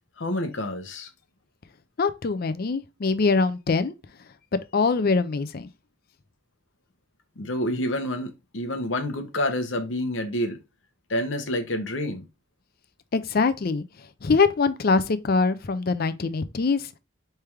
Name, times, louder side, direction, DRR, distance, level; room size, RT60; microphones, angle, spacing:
voice 1, 0.2-1.1 7.4-10.6 11.1-12.2, left 1 dB, 70° left, 0.9 m, -28 dB
voice 2, 2.0-3.9 4.7-5.7 13.1-13.8 14.2-16.8, left 4 dB, 50° left, 0.5 m, -23 dB
3.5 x 3.3 x 4.5 m
head